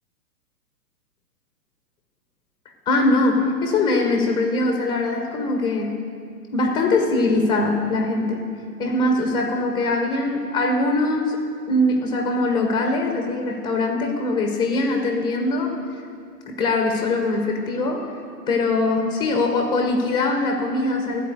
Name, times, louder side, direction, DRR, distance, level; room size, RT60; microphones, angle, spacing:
voice 1, 2.9-6.0 6.5-8.4 8.8-11.4 11.7-15.7 16.5-18.1 18.5-21.2, left 2 dB, 10° left, 2 dB, 0.8 m, -22 dB
13.5 x 4.7 x 7.9 m, 2.2 s
hypercardioid pair, 140°, 48 cm